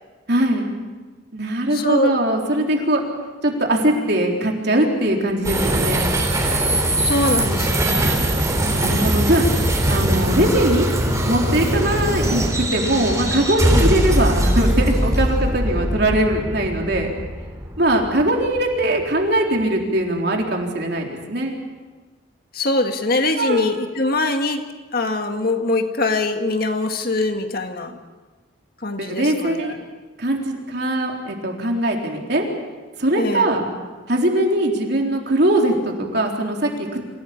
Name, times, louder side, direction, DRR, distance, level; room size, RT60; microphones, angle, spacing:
voice 1, 0.3-0.7 1.3-3.0 3.4-6.0 8.3-9.6 9.9-10.9 11.3-17.1 17.8-21.6 23.4-23.7 29.0-29.7 30.2-32.4 33.0-33.6 34.1-37.0, right 1 dB, 55° right, 1 dB, 3.9 m, -21 dB
voice 2, 1.7-2.1 7.0-8.3 13.7-13.8 22.5-24.6 24.9-28.0 28.8-29.7 33.2-33.5, left 2 dB, 50° left, 5 dB, 1.8 m, -23 dB
sound 1, 5.4-18.8, right 1 dB, 15° right, 3.5 m, -21 dB
26.5 x 17.0 x 8.6 m, 1.3 s
head